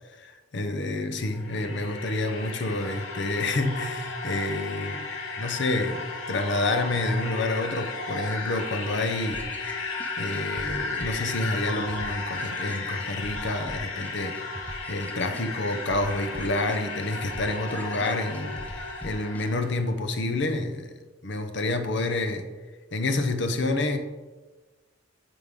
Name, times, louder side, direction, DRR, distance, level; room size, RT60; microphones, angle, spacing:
voice 1, 0.2-5.1 5.4-9.4 9.7-9.8 10.2-14.4 14.9-21.0 21.2-22.4 22.9-24.0, left 2 dB, 60° left, 7 dB, 0.8 m, -28 dB
sound 1, 1.2-19.8, left 3 dB, 85° left, 1.2 m, -35 dB
sound 2, 9.3-19.5, left 1 dB, 10° left, 0.4 m, -41 dB
8.9 x 5.1 x 3.7 m, 1.3 s
head